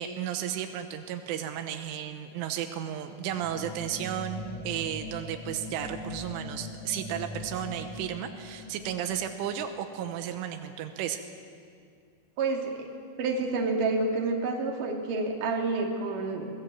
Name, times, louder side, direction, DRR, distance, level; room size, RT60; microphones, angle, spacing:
voice 1, 0.0-11.2, right 10 dB, 90° right, 7 dB, 3.5 m, -34 dB
sound 1, 3.3-10.0, left 2 dB, 30° left, 7.4 m, -41 dB
voice 2, 12.4-12.7 13.2-16.5, right 3 dB, 50° right, 0 dB, 3.5 m, -28 dB
24.0 x 18.5 x 7.6 m, 2.3 s
omnidirectional pair, 5.5 m